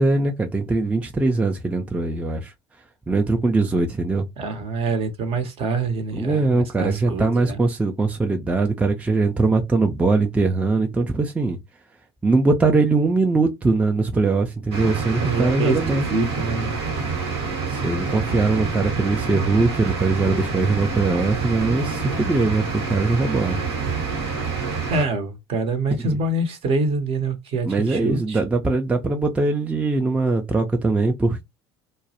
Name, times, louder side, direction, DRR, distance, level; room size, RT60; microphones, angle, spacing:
voice 1, 0.0-2.5 3.1-4.3 6.1-11.6 12.2-16.1 17.7-23.6 27.7-31.4, right 3 dB, 10° right, 0.4 m, -21 dB
voice 2, 4.4-7.6 15.2-16.8 24.9-28.4, right 3 dB, 45° right, 0.7 m, -25 dB
sound 1, 14.7-25.0, right 4 dB, 75° right, 0.9 m, -27 dB
2.2 x 2.0 x 2.7 m
hypercardioid pair, 70°, 13 cm